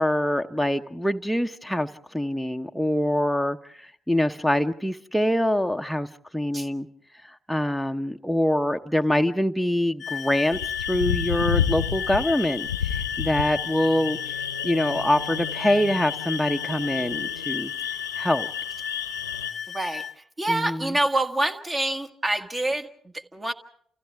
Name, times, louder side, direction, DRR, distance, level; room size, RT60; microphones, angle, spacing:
voice 1, 0.0-3.6 4.1-6.1 6.3-6.9 7.5-10.6 10.9-14.2 14.6-17.7 18.2-18.5 20.5-20.8, left 1 dB, ahead, 0.9 m, -24 dB
sound 1, 10.0-20.1, left 8 dB, 50° left, 0.8 m, -35 dB
sound 2, 10.5-19.5, left 8 dB, 85° left, 0.8 m, -31 dB
voice 2, 19.7-23.5, right 1 dB, 25° right, 1.8 m, -27 dB
29.5 x 29.0 x 3.5 m
figure-of-eight pair, 40°, 0 cm